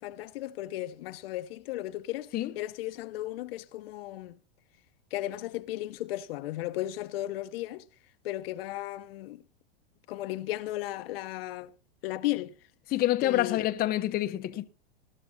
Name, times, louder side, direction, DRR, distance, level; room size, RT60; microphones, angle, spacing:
voice 1, 0.0-4.4 5.1-7.8 8.2-9.4 10.1-11.7 12.0-12.5 13.2-13.6, left 15 dB, 65° left, 0.7 m, -35 dB
voice 2, 12.9-14.7, left 14 dB, 30° left, 0.7 m, -27 dB
20.0 x 11.5 x 2.7 m
hypercardioid pair, 110°, 32 cm